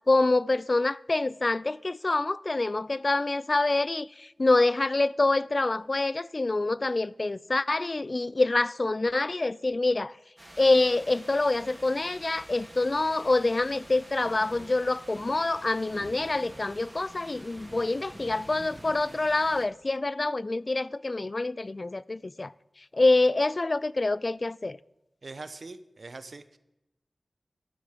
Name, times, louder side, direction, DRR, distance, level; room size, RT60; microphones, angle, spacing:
voice 1, 0.1-10.1 10.6-22.5 22.9-24.8, left 2 dB, 40° left, 0.3 m, -26 dB
sound 1, 10.4-19.7, right 1 dB, 15° right, 2.5 m, -48 dB
voice 2, 25.2-26.6, right 3 dB, 60° right, 0.8 m, -42 dB
12.5 x 10.0 x 5.1 m
wide cardioid pair, 80°, 0 cm